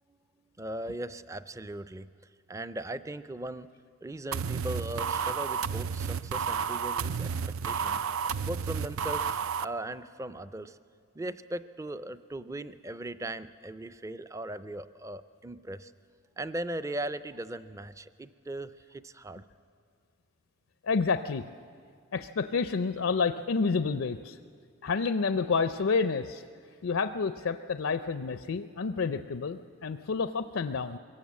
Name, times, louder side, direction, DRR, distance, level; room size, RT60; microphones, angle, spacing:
voice 1, 0.6-2.1 2.5-3.7 4.0-8.0 8.4-10.8 11.2-15.9 16.4-19.5, right 1 dB, 15° right, 14 dB, 0.4 m, -38 dB
sound 1, 4.3-9.7, right 6 dB, 75° right, 0.5 m, -31 dB
voice 2, 20.8-21.4 22.1-24.4 24.8-26.4 26.8-31.0, left 5 dB, 65° left, 10 dB, 0.5 m, -29 dB
23.0 x 17.5 x 7.5 m, 2.2 s
head